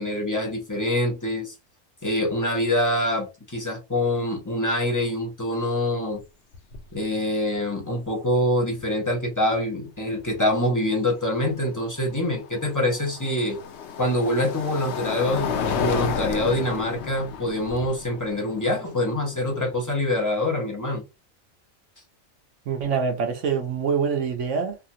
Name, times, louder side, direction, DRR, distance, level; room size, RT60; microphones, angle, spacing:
voice 1, 0.0-1.5 2.0-6.2 6.9-13.6 14.0-21.0, left 1 dB, 20° left, 0.6 m, -25 dB
sound 1, 6.1-6.2 6.5-7.0 8.8-8.9 11.9-20.0, left 6 dB, 65° left, 0.8 m, -32 dB
voice 2, 22.7-24.8, right 6 dB, 70° right, 0.9 m, -25 dB
2.8 x 2.4 x 2.7 m
omnidirectional pair, 1.4 m